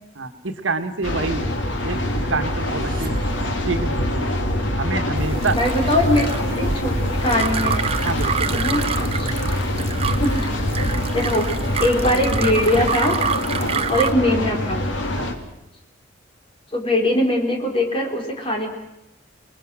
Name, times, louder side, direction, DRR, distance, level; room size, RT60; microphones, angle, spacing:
voice 1, 0.2-1.5 1.8-2.0 2.3-3.2 3.7-4.3 4.8-5.6 8.0-8.6 9.4-9.5 13.6-13.8 15.1-15.4, right 3 dB, 80° right, 9 dB, 1.6 m, -27 dB
sound 1, 1.0-15.3, left 1 dB, 70° left, 3.1 m, -24 dB
sound 2, 2.2-3.9, right 1 dB, 45° right, 1.7 m, -34 dB
sound 3, 5.2-14.1, right 6 dB, 30° right, 0.9 m, -28 dB
voice 2, 5.5-7.8 8.5-8.8 9.1-9.3 10.2-10.4 11.1-11.5 11.8-13.2 13.9-14.8 16.7-18.7, left 1 dB, 25° left, 2 dB, 4.0 m, -21 dB
29.0 x 20.5 x 6.3 m, 0.88 s
head